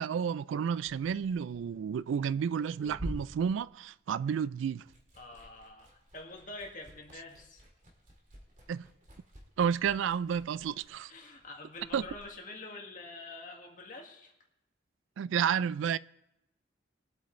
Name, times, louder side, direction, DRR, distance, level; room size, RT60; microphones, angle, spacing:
voice 1, 0.0-4.8 8.7-8.9 9.6-11.1 11.9-12.0 15.2-16.0, right 7 dB, 75° right, 0.3 m, -31 dB
Liquid, 0.8-4.4 4.7-12.3, equal, 40° right, 2.0 m, -48 dB
voice 2, 5.2-7.7 11.1-14.3, left 2 dB, 45° left, 1.8 m, -46 dB
21.0 x 7.9 x 3.1 m
head